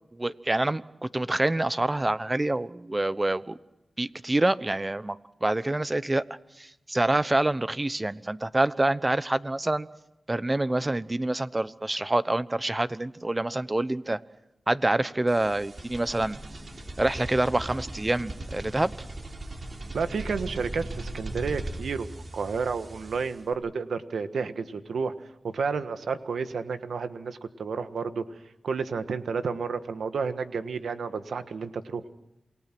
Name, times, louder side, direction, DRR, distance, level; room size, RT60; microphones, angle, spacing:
voice 1, 0.1-3.6 4.0-6.2 6.6-9.9 10.3-14.2 14.7-16.4 17.0-18.9, right 2 dB, 25° right, 15 dB, 1.0 m, -26 dB
sound 1, 15.3-23.5, right 1 dB, 45° right, 4.0 m, -39 dB
voice 2, 19.9-22.1 22.3-25.1 25.4-28.2 28.6-32.0, right 5 dB, 90° right, 9 dB, 1.5 m, -31 dB
28.0 x 19.5 x 6.1 m, 0.90 s
cardioid pair, 50°, 0 cm